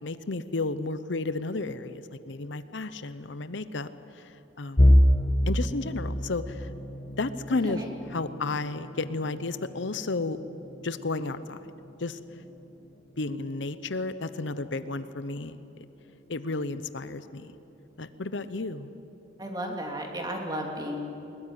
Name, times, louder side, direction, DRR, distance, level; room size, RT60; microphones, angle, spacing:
voice 1, 0.0-5.0 5.5-6.7 7.2-7.8 8.1-10.4 10.8-11.6 12.0-12.2 13.2-15.6 16.3-17.5 18.0-18.9, left 3 dB, 70° left, 12 dB, 0.8 m, -32 dB
sound 1, 4.8-16.6 17.0-17.3 17.7-17.8 18.7-19.2, equal, 30° left, 1.2 m, -29 dB
voice 2, 19.4-21.0, equal, 20° right, 1 dB, 3.0 m, -33 dB
21.0 x 20.5 x 9.8 m, 3.0 s
head